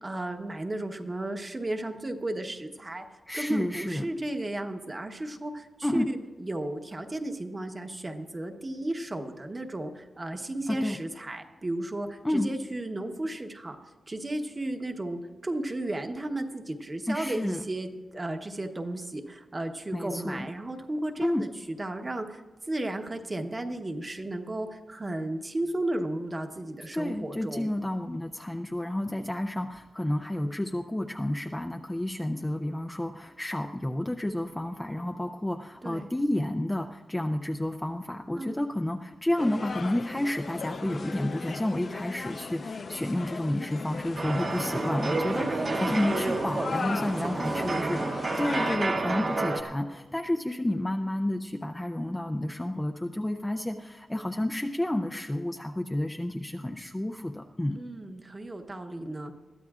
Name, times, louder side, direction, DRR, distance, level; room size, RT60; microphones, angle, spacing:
voice 1, 0.0-3.1 3.3-13.8 14.1-22.4 22.7-27.7 35.8-36.1 38.3-38.6 45.3-45.8 46.8-48.0 57.7-59.3, right 1 dB, 20° right, 5 dB, 1.0 m, -34 dB
voice 2, 3.3-4.1 5.8-6.1 10.7-11.0 12.2-12.5 17.1-17.6 19.9-20.5 21.2-21.5 26.9-48.0 48.4-57.8, left 1 dB, 10° left, 3 dB, 0.4 m, -30 dB
sound 1, 39.4-48.8, left 4 dB, 50° left, 0.7 m, -38 dB
sound 2, 44.2-49.6, right 2 dB, 40° right, 1.1 m, -29 dB
21.5 x 14.5 x 2.4 m, 1.4 s
wide cardioid pair, 165°, 0 cm